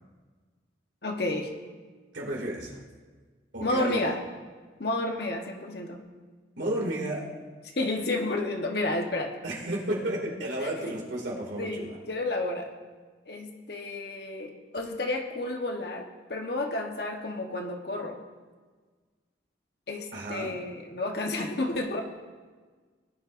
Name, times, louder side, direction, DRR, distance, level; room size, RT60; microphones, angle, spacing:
voice 1, 1.0-1.5 3.6-4.2 4.8-6.1 7.8-9.3 10.6-10.7 11.6-12.7 13.3-18.2 19.9-22.0, left 2 dB, 55° left, 3 dB, 1.2 m, -31 dB
voice 2, 2.1-2.8 3.5-4.1 6.6-7.3 9.4-12.0 20.1-20.5, right 1 dB, 75° right, -3 dB, 2.5 m, -32 dB
19.0 x 10.5 x 2.6 m, 1.4 s
head